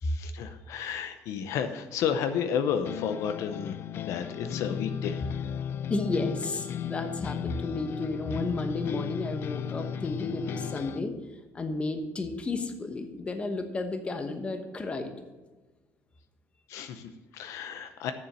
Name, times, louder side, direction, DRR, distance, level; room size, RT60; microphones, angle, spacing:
voice 1, 0.0-3.7 4.0-5.2 16.7-18.1, left 8 dB, 75° left, 9 dB, 0.7 m, -32 dB
sound 1, 2.8-11.0, left 8 dB, 45° left, 0.3 m, -35 dB
voice 2, 5.9-11.2 11.5-15.1, left 3 dB, 20° left, 7 dB, 1.0 m, -32 dB
7.2 x 6.9 x 8.0 m, 1.2 s
cardioid pair, 150°, 5 cm